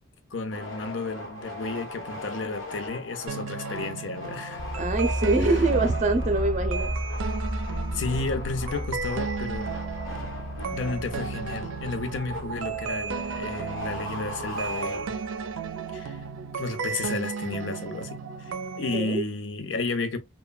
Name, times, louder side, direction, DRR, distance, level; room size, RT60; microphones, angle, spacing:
voice 1, 0.3-4.6 7.9-9.8 10.7-15.1 15.9-16.2 16.5-20.2, left 3 dB, 70° left, 0.5 m, -32 dB
sound 1, 0.5-15.5, left 1 dB, 90° left, 1.0 m, -39 dB
sound 2, 3.3-19.0, right 6 dB, 90° right, 0.4 m, -35 dB
sound 3, 4.6-16.0 16.2-16.3, equal, 20° left, 0.6 m, -34 dB
voice 2, 4.8-6.9 18.9-19.2, right 2 dB, 35° right, 0.5 m, -24 dB
3.0 x 2.2 x 2.2 m
head